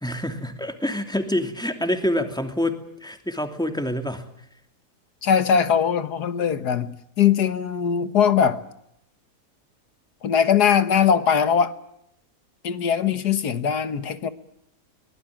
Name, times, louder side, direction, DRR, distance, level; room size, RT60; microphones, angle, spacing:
voice 1, 0.0-4.3, left 1 dB, 5° left, 2.7 m, -27 dB
voice 2, 5.2-8.6 10.2-11.7 12.6-14.3, left 7 dB, 85° left, 1.9 m, -21 dB
23.5 x 20.5 x 8.8 m
omnidirectional pair, 1.7 m